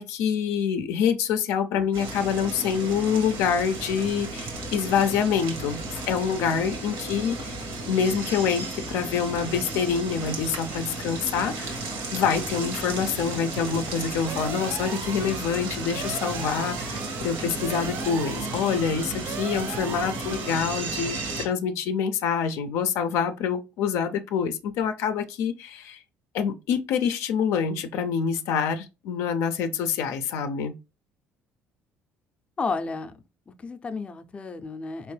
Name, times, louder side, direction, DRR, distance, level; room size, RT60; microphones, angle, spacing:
voice 1, 0.0-5.8 6.1-7.5 7.9-11.8 12.1-26.0 26.3-30.7, left 7 dB, 80° left, 0.4 m, -26 dB
sound 1, 1.9-21.5, right 2 dB, 85° right, 1.4 m, -34 dB
sound 2, 14.3-20.9, right 8 dB, 55° right, 0.4 m, -39 dB
voice 2, 32.6-33.1 33.5-35.1, left 4 dB, 25° left, 0.5 m, -32 dB
4.3 x 3.0 x 3.2 m
cardioid pair, 115°, 5 cm